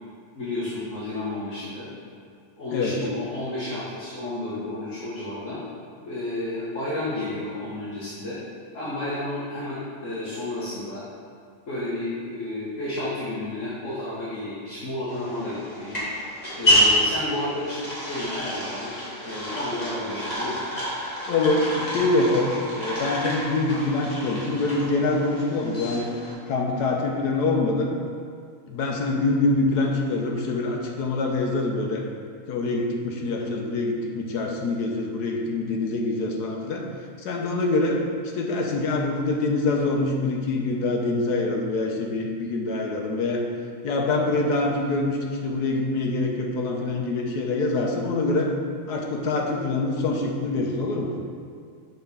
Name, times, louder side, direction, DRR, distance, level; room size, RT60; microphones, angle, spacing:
voice 1, 0.3-1.9 2.6-5.6 6.0-8.4 8.7-11.0 11.7-16.0 16.6-18.9 19.2-20.6, left 1 dB, 55° left, -9 dB, 1.7 m, -31 dB
sound 1, 15.1-26.3, equal, 25° left, 2.0 m, -28 dB
voice 2, 21.3-26.1 26.5-27.9 28.7-32.0 32.5-36.8 37.2-38.0 38.3-43.4 43.8-48.5 48.9-51.1, left 2 dB, 85° left, 1 dB, 1.5 m, -25 dB
6.9 x 4.6 x 5.5 m, 2.2 s
omnidirectional pair, 1.7 m